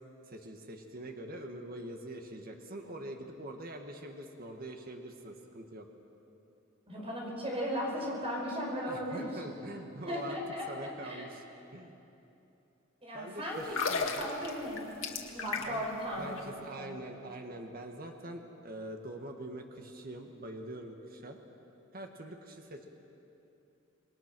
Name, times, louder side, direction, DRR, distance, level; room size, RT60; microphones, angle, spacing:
voice 1, 0.3-5.9 8.9-10.4 10.7-11.4 11.7-12.0 13.1-14.3 15.4-15.8 16.1-21.4 21.9-22.9, right 1 dB, 45° right, 3 dB, 1.6 m, -44 dB
voice 2, 6.9-9.4 10.1-11.3 13.0-16.4 16.8-16.9, equal, 30° right, -2 dB, 5.3 m, -37 dB
sound 1, 13.6-15.9 16.2-16.4, left 4 dB, 75° left, 2.0 m, -34 dB
27.5 x 21.0 x 6.2 m, 2.9 s
head